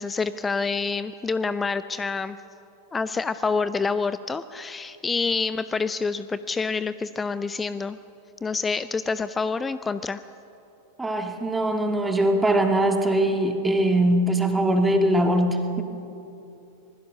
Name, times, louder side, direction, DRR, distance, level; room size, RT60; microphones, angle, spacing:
voice 1, 0.0-2.4 2.9-8.0 8.4-10.2, left 4 dB, 15° left, 14 dB, 0.5 m, -27 dB
voice 2, 11.0-15.8, right 1 dB, 10° right, 4 dB, 2.2 m, -22 dB
25.5 x 20.5 x 6.5 m, 2.8 s
figure-of-eight pair, 90°, 0 cm